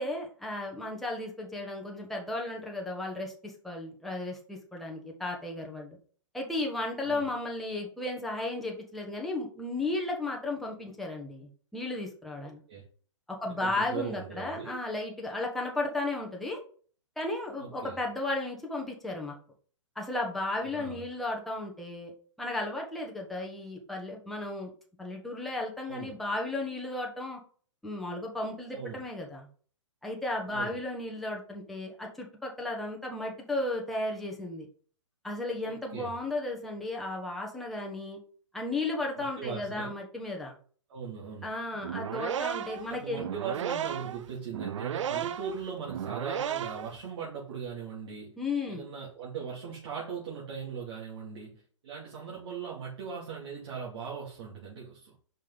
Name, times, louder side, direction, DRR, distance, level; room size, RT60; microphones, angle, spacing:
voice 1, 0.0-6.0 6.3-12.6 13.3-16.6 17.2-19.4 20.0-22.1 22.4-24.7 25.0-27.4 27.8-29.5 30.0-34.7 35.2-38.2 38.5-40.5 41.4-43.3 48.4-48.8, left 2 dB, ahead, 1.1 m, -34 dB
voice 2, 13.6-14.8 17.6-18.0 20.7-21.0 25.9-26.2 28.7-29.0 30.5-30.8 35.6-36.2 39.4-39.9 40.9-41.5 42.9-48.3 48.7-55.1, right 6 dB, 55° right, 2.5 m, -39 dB
sound 1, 41.7-47.0, right 9 dB, 70° right, 0.6 m, -34 dB
5.3 x 5.2 x 3.9 m
hypercardioid pair, 155°, 16 cm